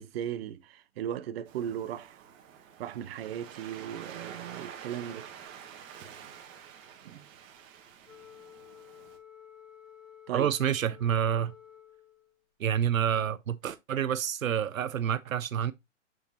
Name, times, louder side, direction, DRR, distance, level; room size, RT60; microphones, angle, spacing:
voice 1, 0.0-2.3 2.8-5.3 7.0-7.2 10.3-10.5, right 10 dB, 50° right, 0.8 m, -37 dB
Waves surf, 1.5-9.2, right 8 dB, 30° right, 1.5 m, -48 dB
Wind instrument woodwind instrument, 8.0-12.4, left 9 dB, 70° left, 2.2 m, -53 dB
voice 2, 10.3-11.5 12.6-15.7, right 9 dB, 90° right, 0.6 m, -28 dB
7.0 x 6.4 x 2.6 m
hypercardioid pair, 120°, 39 cm